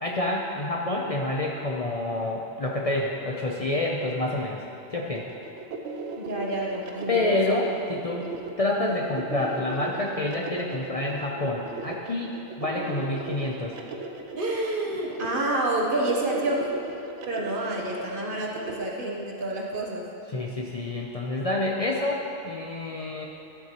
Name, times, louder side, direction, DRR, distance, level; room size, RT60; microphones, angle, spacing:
voice 1, 0.0-4.6 4.9-5.2 7.1-8.3 8.6-13.8 20.3-23.3, left 2 dB, 40° left, -2 dB, 0.6 m, -28 dB
sound 1, 5.1-18.8, right 3 dB, 80° right, 1.0 m, -38 dB
voice 2, 6.2-7.4 14.4-16.7 17.3-20.1, right 2 dB, 50° right, -2 dB, 1.2 m, -28 dB
12.5 x 7.7 x 3.0 m, 2.8 s
omnidirectional pair, 1.2 m